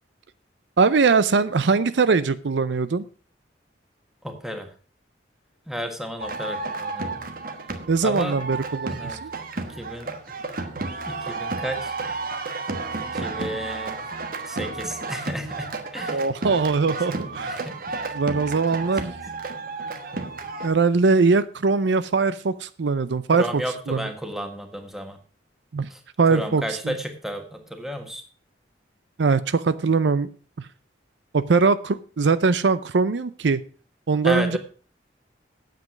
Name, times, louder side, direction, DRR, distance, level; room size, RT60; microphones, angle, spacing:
voice 1, 0.8-3.0 7.9-9.3 16.1-17.5 18.1-19.1 20.6-24.0 25.7-25.9 26.2-27.0 29.2-30.3 30.6-30.7 31.3-33.6 34.1-34.6, right 4 dB, 70° right, 14 dB, 0.5 m, -21 dB
voice 2, 4.2-4.7 5.7-7.2 8.0-8.4 8.9-9.2 9.8-10.2 11.0-11.9 13.0-14.0 14.5-16.2 17.1-17.2 17.5-18.0 18.7-18.8 23.3-25.2 25.9-26.0 26.3-28.2 34.2-34.6, equal, ahead, 5 dB, 1.5 m, -32 dB
sound 1, 6.2-20.7, right 3 dB, 50° right, 1.3 m, -32 dB
9.4 x 7.7 x 5.9 m, 0.39 s
head